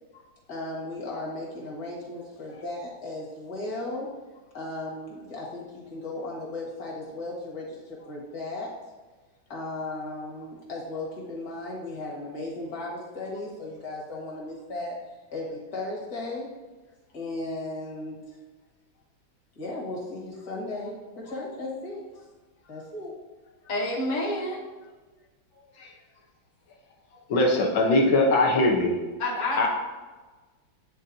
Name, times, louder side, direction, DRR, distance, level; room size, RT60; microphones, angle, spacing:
voice 1, 0.5-4.1 4.5-8.7 9.5-15.0 15.3-16.5 17.1-18.2 19.6-22.0 22.7-23.2, left 2 dB, 50° left, -4 dB, 2.1 m, -36 dB
voice 2, 23.7-24.6 29.2-29.7, left 1 dB, 30° left, -3 dB, 1.0 m, -28 dB
voice 3, 27.3-29.0 29.6-29.7, left 2 dB, 80° left, -1 dB, 1.7 m, -21 dB
10.5 x 3.8 x 2.7 m, 1.3 s
omnidirectional pair, 2.1 m